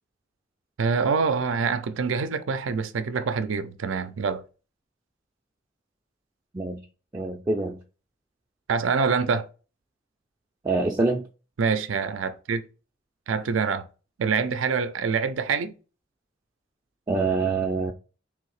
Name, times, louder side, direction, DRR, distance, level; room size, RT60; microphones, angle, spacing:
voice 1, 0.8-4.4 8.7-9.5 11.6-12.6 13.3-13.9 14.2-15.7, right 5 dB, 90° right, 0.4 m, -25 dB
voice 2, 7.1-7.8 10.6-11.2 17.1-17.9, right 3 dB, 20° right, 0.4 m, -25 dB
3.5 x 2.7 x 4.6 m
head